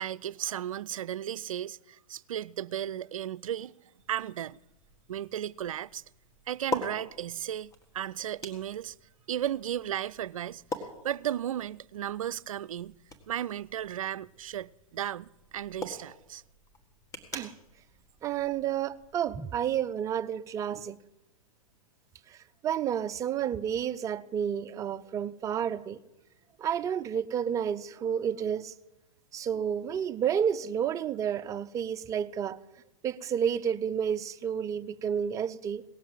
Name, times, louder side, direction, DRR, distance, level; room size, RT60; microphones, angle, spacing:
voice 1, 0.0-3.7 4.1-4.6 5.1-6.0 6.5-8.9 9.3-13.0 13.3-16.4, right 11 dB, 65° right, 0.5 m, -35 dB
sound 1, 4.0-19.2, left 2 dB, 20° left, 1.8 m, -44 dB
voice 2, 18.2-21.0 22.3-22.4 22.6-26.0 26.6-28.7 29.3-32.6 33.0-35.8, right 8 dB, 15° right, 0.5 m, -30 dB
18.0 x 7.2 x 7.7 m
figure-of-eight pair, 115°, 18 cm